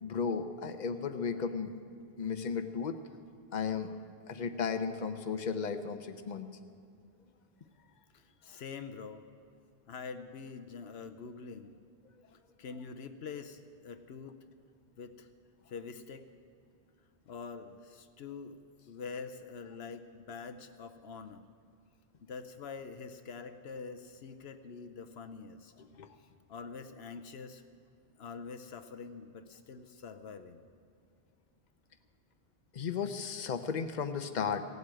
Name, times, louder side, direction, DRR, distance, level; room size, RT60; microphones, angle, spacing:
voice 1, 0.0-1.7 2.2-3.0 3.5-4.0 4.3-6.5 26.0-26.1 32.7-34.6, left 6 dB, 45° left, 9 dB, 0.9 m, -34 dB
voice 2, 8.1-9.3 9.9-11.8 12.6-14.4 15.0-15.3 15.7-16.3 17.3-21.4 22.2-25.7 26.5-27.6 28.2-30.7, left 5 dB, 75° left, 9 dB, 1.0 m, -45 dB
17.0 x 8.1 x 9.0 m, 2.4 s
omnidirectional pair, 1.1 m